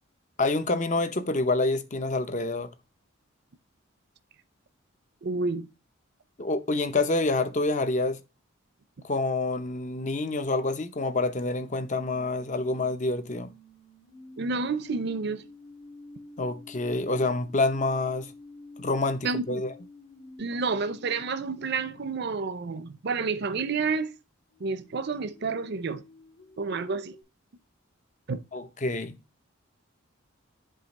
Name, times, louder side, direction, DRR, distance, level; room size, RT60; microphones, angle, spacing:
voice 1, 0.4-2.7 6.4-8.2 9.0-13.5 16.4-18.3 18.8-19.7 28.5-29.2, left 2 dB, 35° left, 0.7 m, -27 dB
voice 2, 5.2-5.7 14.4-15.4 19.2-19.6 20.4-24.1 24.6-26.0 26.6-27.1 28.3-28.4, right 4 dB, 50° right, 0.5 m, -30 dB
sound 1, 11.7-22.7 24.5-27.2, left 2 dB, 75° left, 2.5 m, -50 dB
7.5 x 2.9 x 5.3 m
head